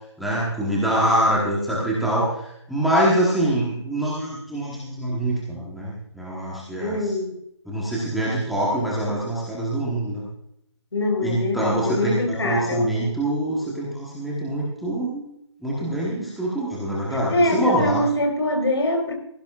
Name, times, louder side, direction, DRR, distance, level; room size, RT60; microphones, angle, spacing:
voice 1, 0.2-7.1 7.7-10.2 11.2-15.3 15.6-18.0, right 1 dB, ahead, 1.1 m, -24 dB
voice 2, 6.8-7.4 10.9-12.9 17.1-19.1, left 1 dB, 60° left, 4.1 m, -23 dB
17.5 x 15.5 x 2.4 m
hypercardioid pair, 170°, 15 cm